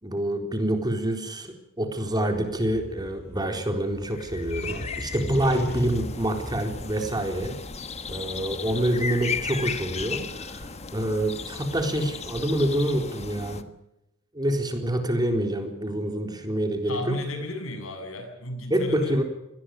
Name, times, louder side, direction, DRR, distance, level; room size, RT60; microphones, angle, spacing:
voice 1, 0.0-7.6 8.1-13.7 14.3-17.2 18.7-19.2, right 1 dB, 20° right, 4 dB, 4.0 m, -27 dB
sound 1, 2.1-10.6, left 1 dB, 50° left, 3.7 m, -41 dB
sound 2, 4.1-13.6, left 5 dB, 30° left, 1.5 m, -36 dB
voice 2, 16.9-19.2, left 1 dB, 80° left, 6 dB, 7.2 m, -33 dB
25.0 x 19.5 x 6.6 m, 0.88 s
head